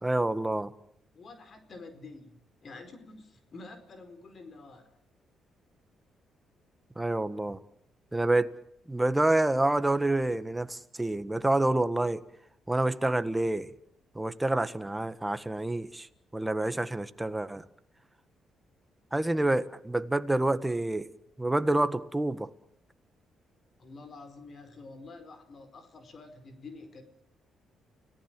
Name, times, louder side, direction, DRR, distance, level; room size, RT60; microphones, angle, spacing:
voice 1, 0.0-0.7 6.9-7.6 8.1-8.5 8.9-12.2 12.7-13.7 14.1-16.1 16.3-17.6 19.1-21.1 21.4-22.5, right 2 dB, 10° right, 1.6 m, -27 dB
voice 2, 1.1-5.0 23.8-27.0, left 3 dB, 45° left, 4.6 m, -48 dB
30.0 x 18.0 x 7.6 m
cardioid pair, 90°, 0 cm